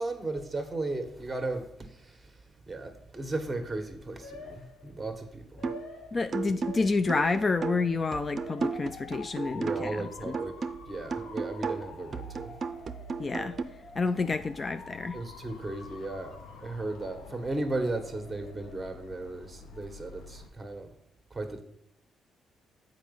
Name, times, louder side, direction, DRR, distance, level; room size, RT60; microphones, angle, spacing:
voice 1, 0.0-5.7 9.5-10.6 10.9-12.5 15.1-20.9 21.3-21.6, right 2 dB, 15° right, 5 dB, 1.6 m, -36 dB
Motor vehicle (road) / Siren, 3.7-20.5, left 4 dB, 80° left, 1.0 m, -48 dB
sound 1, 5.6-5.9 6.3-10.0 10.3-13.6, right 5 dB, 45° right, 0.6 m, -35 dB
voice 2, 6.1-10.4 13.2-13.6 14.0-15.2, left 3 dB, 35° left, 11 dB, 0.3 m, -29 dB
7.3 x 5.2 x 5.5 m, 0.77 s
cardioid pair, 90°, 0 cm